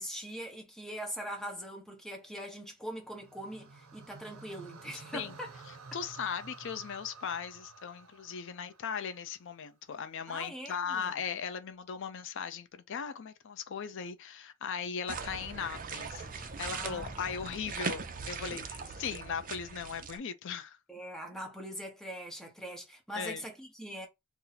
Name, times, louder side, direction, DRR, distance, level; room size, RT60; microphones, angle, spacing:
voice 1, 0.0-5.5 10.3-11.1 16.7-17.6 20.9-24.1, equal, ahead, 0.8 m, -42 dB
sound 1, 3.1-9.4, right 4 dB, 85° right, 0.6 m, -51 dB
voice 2, 5.9-20.8 23.1-23.4, left 7 dB, 60° left, 0.4 m, -38 dB
sound 2, 15.1-20.2, right 5 dB, 40° right, 0.4 m, -40 dB
sound 3, 15.2-19.2, equal, 20° right, 1.2 m, -53 dB
2.7 x 2.0 x 3.8 m
head